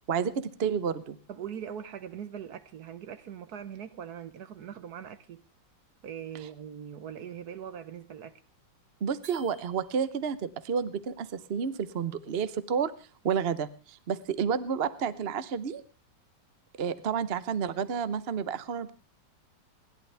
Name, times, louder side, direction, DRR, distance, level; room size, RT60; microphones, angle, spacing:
voice 1, 0.1-1.2 9.0-12.9 13.2-15.8 16.8-18.9, right 7 dB, 45° right, 0.8 m, -30 dB
voice 2, 1.3-5.4 6.0-8.4, right 8 dB, 60° right, 1.3 m, -41 dB
sound 1, 9.2-10.4, right 3 dB, 85° right, 3.3 m, -54 dB
28.0 x 11.5 x 3.4 m
omnidirectional pair, 2.0 m